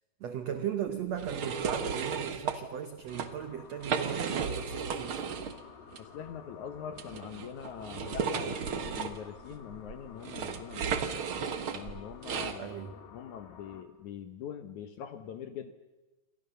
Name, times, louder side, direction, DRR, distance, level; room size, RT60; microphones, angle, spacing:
voice 1, 0.2-5.3 12.6-13.0, right 9 dB, 75° right, 1.5 m, -37 dB
sound 1, 1.2-2.6 3.0-3.3 3.7-5.6 5.9-6.0 7.0-12.6, right 6 dB, 60° right, 1.4 m, -34 dB
sound 2, 3.1-13.8, left 7 dB, 85° left, 3.9 m, -52 dB
voice 2, 6.0-11.0 11.7-15.7, left 8 dB, 65° left, 2.1 m, -43 dB
28.5 x 25.5 x 6.9 m
omnidirectional pair, 4.5 m